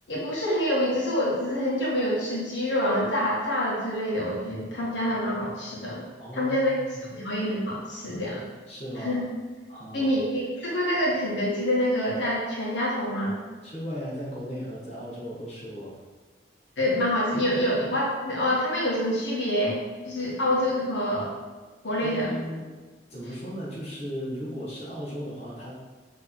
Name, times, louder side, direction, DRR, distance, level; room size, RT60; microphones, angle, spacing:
voice 1, 0.1-6.1 6.3-6.7 7.1-8.4 9.0-9.2 9.9-13.4 16.8-19.8 20.0-21.3 21.8-22.4, equal, 80° left, -5 dB, 1.5 m, -26 dB
voice 2, 6.2-7.1 8.7-9.3 9.7-10.1 13.6-16.0 22.0-22.6 23.1-25.7, equal, 35° left, -7 dB, 1.7 m, -36 dB
6.3 x 3.4 x 4.5 m, 1.3 s
head